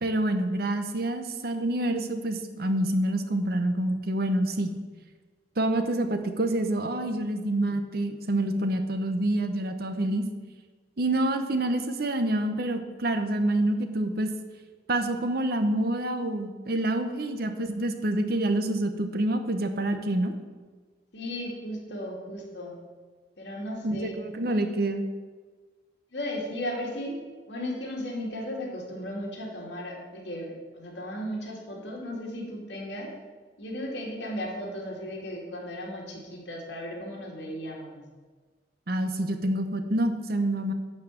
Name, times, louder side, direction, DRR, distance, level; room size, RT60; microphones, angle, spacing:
voice 1, 0.0-4.7 5.6-10.2 11.0-14.3 14.9-20.3 23.8-25.1 38.9-40.7, right 1 dB, 55° right, 8 dB, 0.9 m, -27 dB
voice 2, 21.1-22.8 23.4-24.2 24.5-24.6 26.1-27.2 27.5-33.1 33.6-38.0, left 1 dB, 70° left, -2 dB, 2.7 m, -35 dB
11.0 x 4.8 x 7.8 m, 1.4 s
head